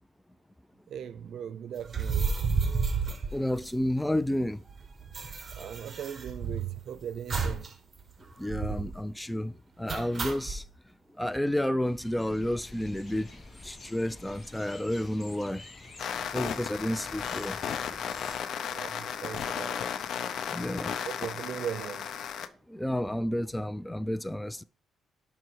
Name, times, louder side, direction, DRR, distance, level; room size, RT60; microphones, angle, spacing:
voice 1, 0.9-2.3 5.6-7.7 10.3-10.4 18.8-19.8 21.0-22.1, right 8 dB, 65° right, 0.6 m, -39 dB
sound 1, 1.8-4.1 4.4-4.5 4.7-6.8 7.3-7.7 8.0-8.1 8.5-9.0 9.9-10.6, right 5 dB, 35° right, 1.3 m, -31 dB
voice 2, 3.1-4.6 8.4-10.6 11.2-13.3 13.6-15.6 16.3-17.6 20.5-20.9 22.7-24.6, left 1 dB, 5° left, 0.3 m, -31 dB
sound 2, 11.8-18.4, left 2 dB, 30° left, 1.5 m, -49 dB
sound 3, 16.0-22.5, left 8 dB, 70° left, 0.6 m, -35 dB
5.8 x 5.8 x 4.7 m
cardioid pair, 90°, 0 cm